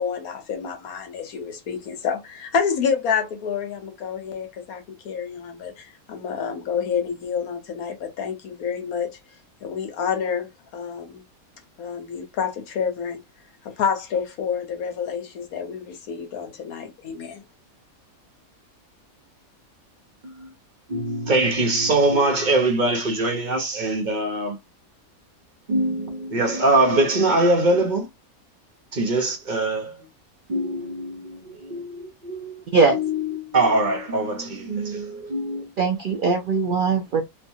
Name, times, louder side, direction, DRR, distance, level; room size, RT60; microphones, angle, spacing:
voice 1, 0.0-9.2 9.6-11.2 11.8-13.2 13.6-17.4, left 7 dB, 75° left, 1.3 m, -28 dB
voice 2, 20.9-24.6 25.7-28.1 28.9-30.0 30.5-32.6 32.9-35.7, right 2 dB, 45° right, 0.7 m, -23 dB
voice 3, 35.8-37.2, right 4 dB, 80° right, 0.4 m, -20 dB
3.2 x 2.2 x 2.6 m
omnidirectional pair, 1.5 m